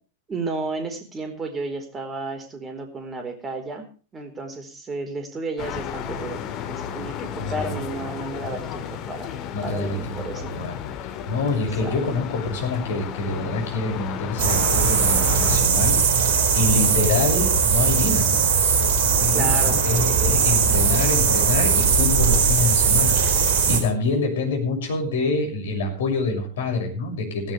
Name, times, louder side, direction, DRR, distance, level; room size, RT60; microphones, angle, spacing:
voice 1, 0.3-3.8 4.1-6.4 6.7-10.6 11.8-12.0 19.3-19.8, right 3 dB, 20° right, 6 dB, 4.3 m, -32 dB
sound 1, 5.6-15.6, left 8 dB, 40° left, 2.4 m, -33 dB
voice 2, 7.4-7.8 9.5-16.0 16.5-18.4 19.0-27.5, left 3 dB, 60° left, 2 dB, 6.6 m, -26 dB
sound 2, 14.4-23.8, right 5 dB, 50° right, 4.2 m, -19 dB
17.0 x 16.0 x 3.4 m, 0.37 s
figure-of-eight pair, 90°, 0 cm